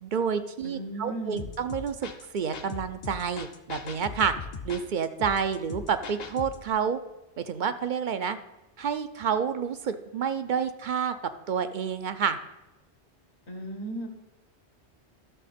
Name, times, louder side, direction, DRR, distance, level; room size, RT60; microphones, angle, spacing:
voice 1, 0.0-4.3 4.6-7.0 7.4-8.4 8.8-11.1 11.5-12.4, right 7 dB, 55° right, 11 dB, 0.6 m, -29 dB
voice 2, 0.6-1.5 13.5-14.1, right 1 dB, 75° left, 5 dB, 1.7 m, -36 dB
sound 1, 1.4-6.7, left 5 dB, 45° left, 0.7 m, -40 dB
12.5 x 6.5 x 4.2 m, 0.97 s
omnidirectional pair, 1.1 m